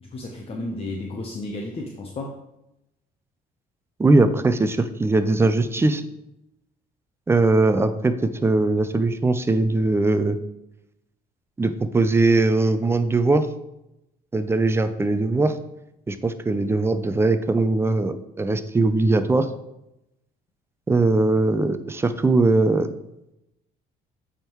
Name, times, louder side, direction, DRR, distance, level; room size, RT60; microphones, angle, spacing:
voice 1, 0.0-2.4, left 2 dB, 35° left, 0 dB, 0.7 m, -33 dB
voice 2, 4.0-6.0 7.3-10.4 11.6-13.5 14.3-15.6 16.1-19.5 20.9-22.9, right 2 dB, 15° right, 10 dB, 0.4 m, -20 dB
8.8 x 3.6 x 3.0 m, 0.86 s
cardioid pair, 110°, 17 cm